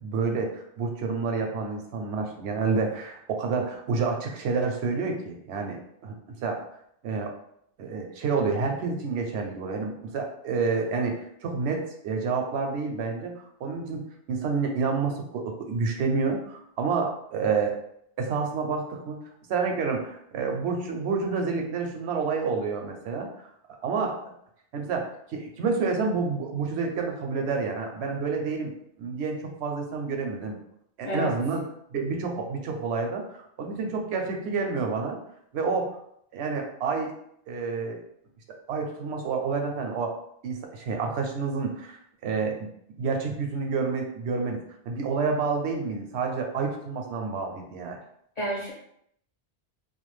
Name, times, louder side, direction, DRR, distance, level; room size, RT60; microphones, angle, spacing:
voice 1, 0.0-6.2 6.4-6.6 7.0-7.3 7.8-14.0 14.3-17.7 18.2-19.2 19.5-23.3 23.8-24.2 24.7-28.7 29.0-30.6 31.0-31.6 31.9-35.2 35.5-35.9 36.3-37.1 37.5-38.0 38.7-40.1 40.4-42.0 42.2-42.7 43.0-48.0, right 4 dB, 90° right, 2 dB, 0.9 m, -29 dB
voice 2, 31.0-31.4 48.4-48.7, equal, 50° left, -5 dB, 0.5 m, -29 dB
2.4 x 2.2 x 3.1 m, 0.71 s
omnidirectional pair, 1.1 m